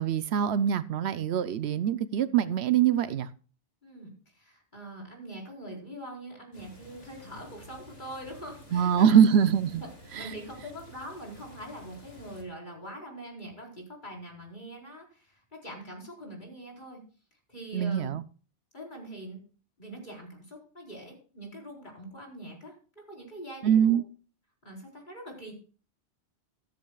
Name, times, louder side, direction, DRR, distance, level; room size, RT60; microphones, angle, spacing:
voice 1, 0.0-3.3 8.7-9.8 10.1-10.3 17.7-18.2 23.6-24.0, right 8 dB, 75° right, 0.9 m, -23 dB
voice 2, 3.8-9.2 9.7-9.9 10.2-17.0 17.5-18.1 18.7-19.4 19.8-24.0 24.6-25.5, right 1 dB, 45° left, 4.5 m, -43 dB
sound 1, 6.5-12.4, equal, 65° left, 3.4 m, -51 dB
14.0 x 13.5 x 2.3 m
omnidirectional pair, 1.1 m